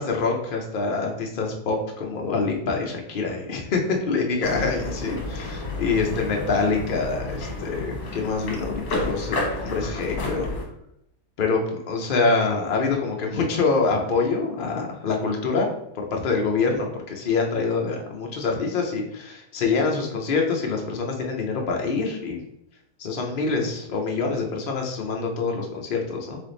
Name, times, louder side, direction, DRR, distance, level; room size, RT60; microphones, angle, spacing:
voice 1, 0.0-10.5 11.4-15.7 15.9-22.4 23.0-26.4, left 4 dB, 45° left, 1 dB, 0.8 m, -25 dB
sound 1, 4.4-10.7, left 2 dB, 75° left, 1.5 m, -31 dB
3.6 x 3.4 x 3.9 m, 0.77 s
omnidirectional pair, 1.6 m